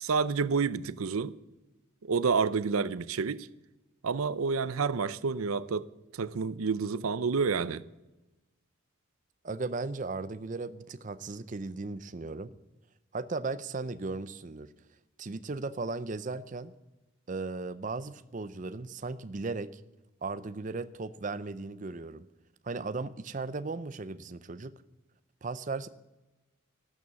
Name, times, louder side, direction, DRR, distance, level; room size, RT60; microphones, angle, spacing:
voice 1, 0.0-1.4 2.1-3.5 4.0-5.9 6.1-7.8, right 5 dB, 90° right, 0.6 m, -29 dB
voice 2, 9.4-12.5 13.1-14.7 15.2-16.7 17.3-19.8 20.2-22.3 22.6-24.8 25.4-25.9, right 3 dB, 35° right, 0.5 m, -36 dB
13.5 x 12.5 x 7.1 m
head